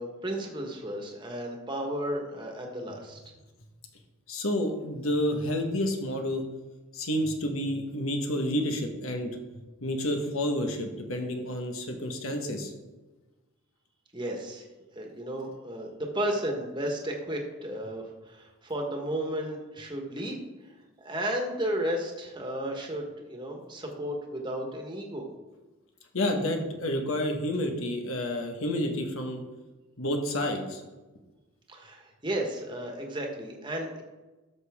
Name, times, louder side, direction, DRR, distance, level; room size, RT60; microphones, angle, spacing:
voice 1, 0.0-3.2 14.1-14.6 14.9-20.4 21.0-25.3 31.7-34.0, right 1 dB, 20° right, 2 dB, 1.3 m, -33 dB
voice 2, 4.3-6.4 6.9-12.7 26.1-29.4 30.0-30.8, left 1 dB, 85° left, 4 dB, 1.4 m, -30 dB
12.5 x 6.7 x 3.6 m, 1.2 s
head